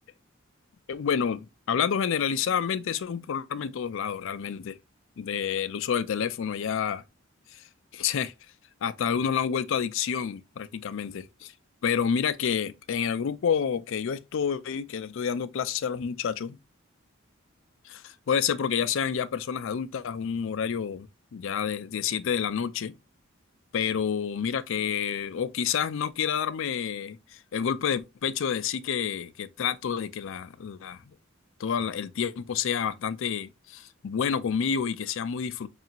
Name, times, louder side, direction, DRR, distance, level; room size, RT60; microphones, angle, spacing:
voice 1, 0.9-4.8 5.2-7.0 7.5-7.6 7.9-8.3 8.8-11.5 11.8-16.6 17.8-22.9 23.7-31.1 31.6-35.7, left 7 dB, 70° left, 0.4 m, -29 dB
5.3 x 2.5 x 2.8 m
head